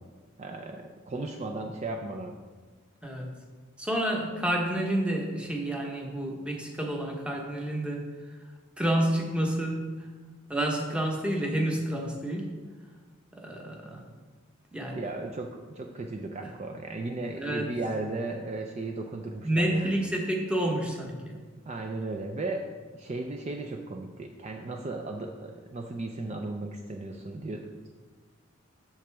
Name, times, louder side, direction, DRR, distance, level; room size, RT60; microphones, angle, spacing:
voice 1, 0.4-2.3 14.9-19.9 21.7-22.7 22.9-27.9, right 2 dB, 35° right, 3 dB, 0.4 m, -35 dB
voice 2, 3.0-3.4 3.8-8.4 8.8-10.1 10.5-12.5 13.3-14.0 14.7-15.0 17.3-17.7 19.4-21.4, right 1 dB, 5° right, 0 dB, 0.9 m, -29 dB
7.8 x 7.0 x 3.4 m, 1.4 s
head